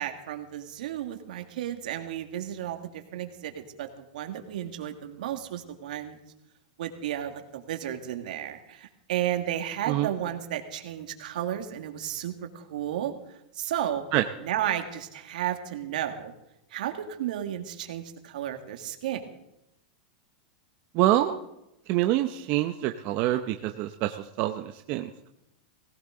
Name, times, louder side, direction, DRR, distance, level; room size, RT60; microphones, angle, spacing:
voice 1, 0.0-6.2 6.8-14.0 14.4-16.3 16.7-19.2, right 11 dB, 75° right, 6 dB, 1.8 m, -33 dB
voice 2, 20.9-21.4 21.9-25.1, right 14 dB, 40° right, 6 dB, 0.7 m, -26 dB
18.0 x 16.5 x 3.8 m, 0.87 s
supercardioid pair, 150°, 4 cm